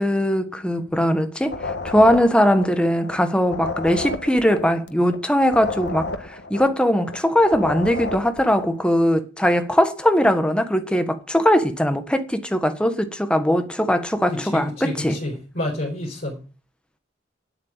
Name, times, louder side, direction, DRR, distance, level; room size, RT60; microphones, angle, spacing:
voice 1, 0.0-15.2, equal, 5° left, 1.4 m, -20 dB
sound 1, 1.4-3.2 3.4-7.2 7.4-8.8, left 3 dB, 60° left, 1.4 m, -32 dB
voice 2, 14.3-16.4, left 1 dB, 45° left, 4.2 m, -29 dB
10.0 x 8.1 x 8.9 m
head